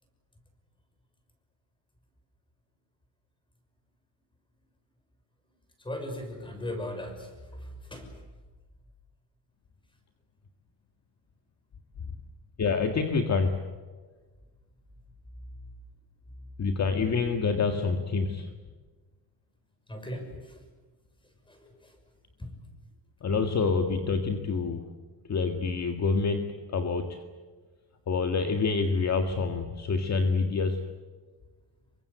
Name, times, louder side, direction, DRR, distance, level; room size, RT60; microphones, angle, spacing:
voice 1, 5.8-8.2 19.9-20.6 21.5-22.0 22.4-22.6, left 1 dB, 10° left, 5 dB, 5.9 m, -38 dB
voice 2, 12.6-13.6 16.6-18.5 23.2-24.9 25.3-27.2 28.1-30.8, left 4 dB, 40° left, 5 dB, 1.9 m, -27 dB
28.0 x 24.0 x 8.1 m, 1.4 s
cardioid pair, 170°, 42 cm